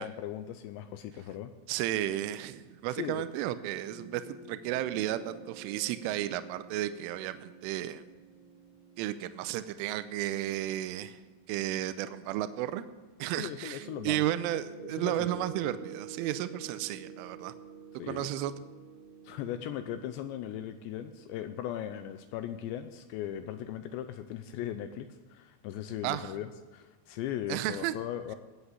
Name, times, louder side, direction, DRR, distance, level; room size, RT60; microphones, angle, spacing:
voice 1, 0.0-1.5 3.0-3.3 13.4-14.2 15.0-15.4 18.0-18.3 19.2-28.4, left 11 dB, 85° left, 9 dB, 2.6 m, -38 dB
voice 2, 1.7-8.0 9.0-11.2 11.5-12.8 13.2-17.5 18.1-18.5 26.0-26.3 27.5-28.0, right 13 dB, 80° right, 12 dB, 3.1 m, -33 dB
sound 1, 3.9-12.6 13.8-21.4, right 6 dB, 65° right, 3.4 m, -49 dB
19.5 x 8.1 x 8.2 m, 1.3 s
omnidirectional pair, 5.8 m